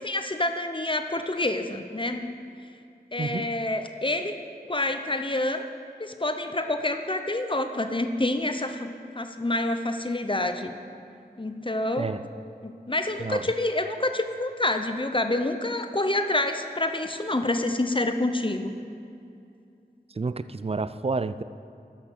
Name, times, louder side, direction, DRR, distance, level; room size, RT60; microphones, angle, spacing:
voice 1, 0.0-2.4 3.1-4.4 4.7-5.7 6.0-10.7 11.4-12.1 12.6-18.7, left 2 dB, 30° left, 7 dB, 0.7 m, -27 dB
voice 2, 3.2-3.5 12.0-12.3 13.2-13.5 20.1-21.4, right 4 dB, 35° right, 14 dB, 0.4 m, -30 dB
12.5 x 5.8 x 6.6 m, 2.6 s
wide cardioid pair, 45°, 17 cm